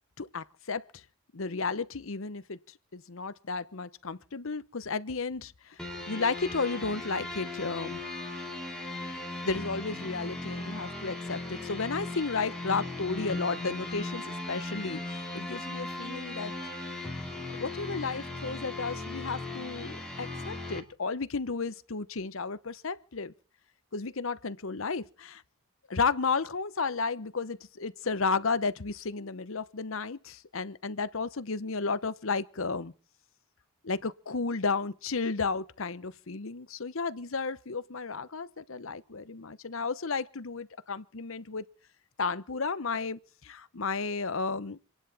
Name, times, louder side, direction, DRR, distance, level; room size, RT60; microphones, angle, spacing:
voice 1, 0.2-1.0 1.3-2.6 2.9-8.0 9.4-16.5 17.0-17.3 17.5-23.3 23.9-25.4 25.9-32.9 33.8-41.6 42.2-44.8, left 4 dB, 70° left, 0.9 m, -33 dB
sound 1, 5.8-20.8, left 2 dB, 5° left, 2.8 m, -38 dB
27.5 x 11.0 x 4.1 m
head